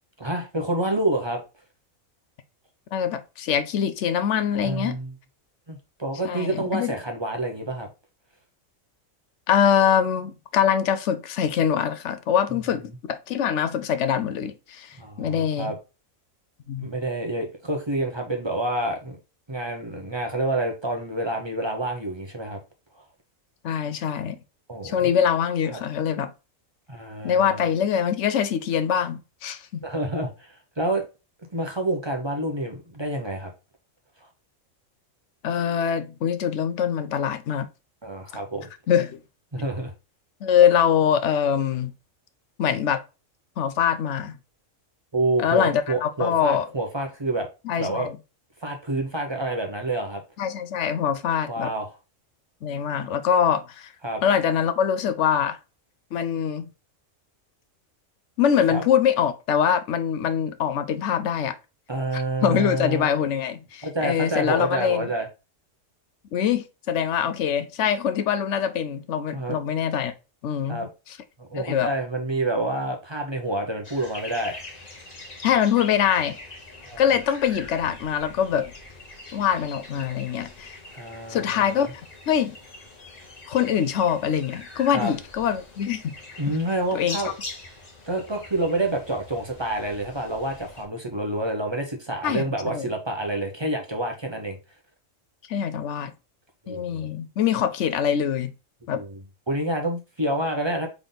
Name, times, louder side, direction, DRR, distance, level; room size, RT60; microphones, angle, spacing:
voice 1, 0.2-1.4 4.6-5.1 5.7-7.9 15.0-15.8 16.8-19.2 19.5-22.6 24.7-25.1 25.7-25.8 26.9-27.7 29.8-31.0 31.5-33.5 38.0-38.7 39.5-39.9 45.1-47.5 47.8-48.1 48.6-50.2 51.5-51.9 54.0-54.2 58.7-58.8 61.9-63.1 63.8-65.3 69.3-69.6 70.7-70.9 71.4-74.6 76.8-77.2 80.9-81.9 84.9-85.1 86.4-87.3 88.0-94.6 96.6-97.1 98.9-99.2 99.5-100.9, right 1 dB, 25° right, 0.7 m, -28 dB
voice 2, 2.9-5.0 6.2-6.9 9.5-15.7 16.7-16.9 23.6-24.4 24.8-26.3 27.2-29.8 35.4-37.7 38.9-39.2 40.4-41.9 42.6-43.0 43.6-44.4 45.4-46.7 47.7-48.2 50.4-51.7 52.6-53.9 54.2-55.6 56.1-56.7 58.4-61.5 62.1-65.1 66.3-70.1 70.4-70.9 71.5-71.9 75.4-76.4 77.0-78.7 79.3-80.8 81.3-81.9 82.3-82.6 83.5-86.1 86.5-86.6 86.9-87.3 92.2-92.9 95.5-96.1 96.7-98.5 98.9-99.0, left 8 dB, 70° left, 0.9 m, -23 dB
sound 1, 73.8-90.9, left 2 dB, 35° left, 1.1 m, -43 dB
3.9 x 3.5 x 3.7 m
omnidirectional pair, 1.4 m